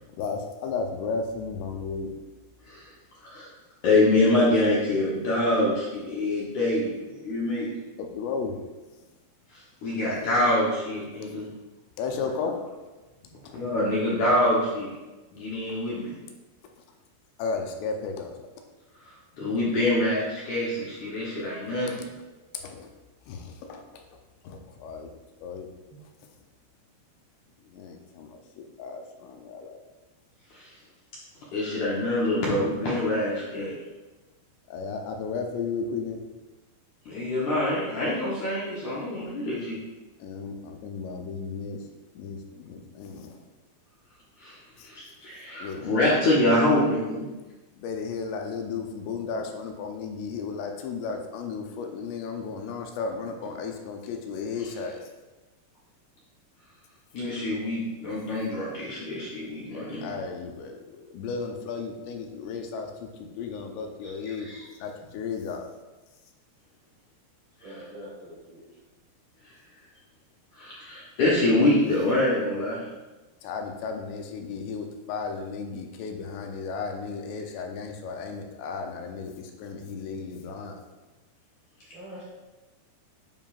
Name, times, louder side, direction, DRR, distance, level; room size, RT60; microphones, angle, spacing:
voice 1, 0.2-2.1 8.0-8.6 12.0-12.6 17.4-18.4 22.5-22.9 23.3-24.0 24.4-25.1 25.4-25.7 27.7-29.8 34.7-36.2 40.2-41.8 42.2-43.4 44.8-44.9 45.6-45.8 47.8-55.0 60.0-64.5 64.8-65.7 73.4-80.8, left 5 dB, 85° left, 3 dB, 2.9 m, -34 dB
voice 2, 3.8-7.7 9.5-11.5 13.5-14.9 15.3-16.1 19.4-21.9 30.5-30.7 31.5-33.7 37.1-39.8 44.4-44.6 44.8-47.3 57.1-60.1 64.0-64.6 70.5-72.9, left 1 dB, 65° left, -7 dB, 1.9 m, -25 dB
voice 3, 67.6-68.6 81.9-82.2, right 1 dB, 45° right, -8 dB, 1.7 m, -44 dB
9.6 x 5.3 x 2.5 m, 1.1 s
omnidirectional pair, 4.8 m